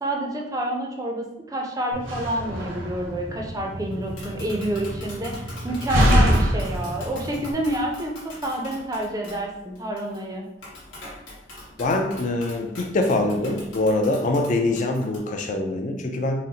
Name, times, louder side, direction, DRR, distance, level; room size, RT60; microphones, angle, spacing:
voice 1, 0.0-10.5, right 1 dB, 20° right, 0 dB, 0.4 m, -28 dB
Slam, 1.9-7.5, equal, 70° right, 0.7 m, -25 dB
Tap, 3.9-15.2, left 1 dB, 85° left, 1.2 m, -43 dB
voice 2, 11.8-16.4, left 2 dB, 40° left, 4 dB, 0.4 m, -24 dB
3.8 x 2.0 x 2.8 m, 0.83 s
head